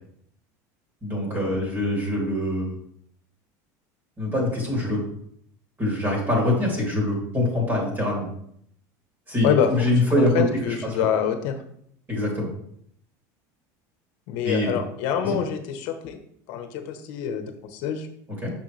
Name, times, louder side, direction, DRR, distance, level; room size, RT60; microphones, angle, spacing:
voice 1, 1.0-2.7 4.2-5.0 5.8-8.3 9.3-10.8 12.1-12.5 14.4-14.8 15.2-15.4 18.4-18.5, left 1 dB, 25° right, -3 dB, 3.0 m, -24 dB
voice 2, 10.1-11.6 14.3-16.2 16.5-18.1, left 8 dB, 65° left, 8 dB, 1.0 m, -26 dB
6.2 x 6.2 x 3.3 m, 0.68 s
supercardioid pair, 135°, 9 cm